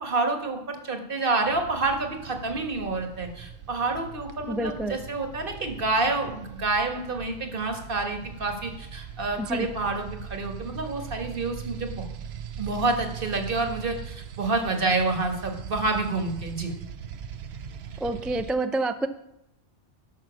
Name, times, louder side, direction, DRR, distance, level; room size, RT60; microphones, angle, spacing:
voice 1, 0.0-12.0 12.6-16.7, right 3 dB, 60° right, 4 dB, 1.6 m, -28 dB
sound 1, 1.5-18.5, right 7 dB, 85° right, 1.0 m, -40 dB
voice 2, 4.5-5.0 9.4-9.7 18.0-19.1, right 2 dB, ahead, 9 dB, 0.3 m, -28 dB
12.5 x 5.9 x 6.1 m, 0.83 s
omnidirectional pair, 1.0 m